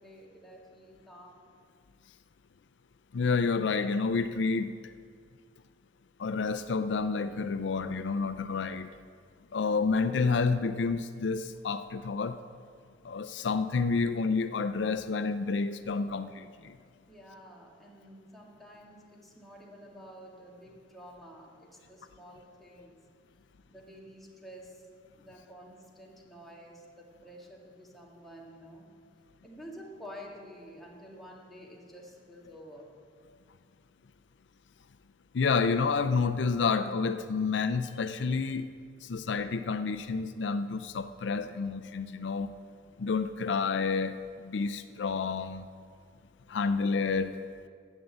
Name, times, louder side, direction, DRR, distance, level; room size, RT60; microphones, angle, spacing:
voice 1, 0.0-1.5 17.1-23.0 23.7-24.9 25.1-28.9 29.4-32.9, equal, ahead, -3 dB, 1.9 m, -50 dB
voice 2, 3.1-4.7 6.2-8.9 9.5-12.4 13.0-16.8 35.3-38.7 39.0-42.5 43.0-45.7 46.5-47.4, left 4 dB, 75° left, 11 dB, 0.4 m, -29 dB
11.0 x 8.1 x 7.8 m, 2.1 s
head